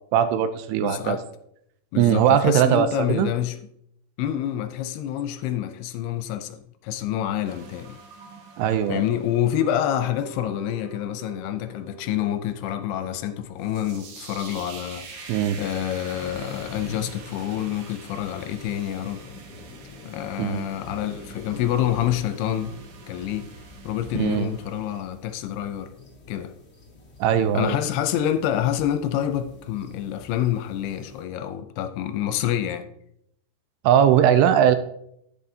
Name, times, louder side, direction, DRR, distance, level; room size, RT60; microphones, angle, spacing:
voice 1, 0.1-1.2 2.0-3.3 8.6-9.1 15.3-15.6 20.4-20.7 24.1-24.5 27.2-27.8 33.8-34.8, right 9 dB, 80° right, 2.5 m, -20 dB
voice 2, 0.8-1.2 1.9-3.6 4.2-8.0 8.9-19.2 20.1-22.7 23.1-23.5 23.8-25.9 26.3-26.5 27.5-32.9, left 11 dB, 80° left, 2.5 m, -27 dB
sound 1, 7.4-25.0, right 6 dB, 65° right, 2.2 m, -45 dB
sound 2, 14.1-31.2, left 3 dB, 50° left, 0.7 m, -46 dB
11.0 x 10.5 x 2.7 m
omnidirectional pair, 4.9 m